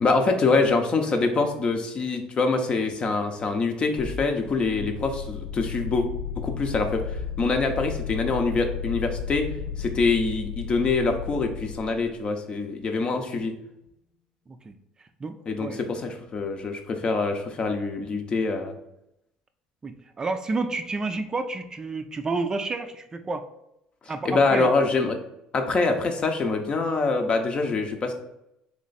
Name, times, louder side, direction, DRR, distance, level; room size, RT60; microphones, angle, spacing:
voice 1, 0.0-6.1 6.4-7.0 7.4-9.4 9.8-13.5 15.5-18.7 24.2-25.2 25.5-28.1, left 3 dB, 40° left, 5 dB, 0.7 m, -25 dB
sound 1, 4.0-12.2, left 7 dB, 75° left, 0.4 m, -34 dB
voice 2, 14.5-15.8 19.8-23.5 24.1-24.7, right 3 dB, 25° right, 8 dB, 0.4 m, -30 dB
3.3 x 3.0 x 4.0 m, 0.82 s
supercardioid pair, 75°, 3 cm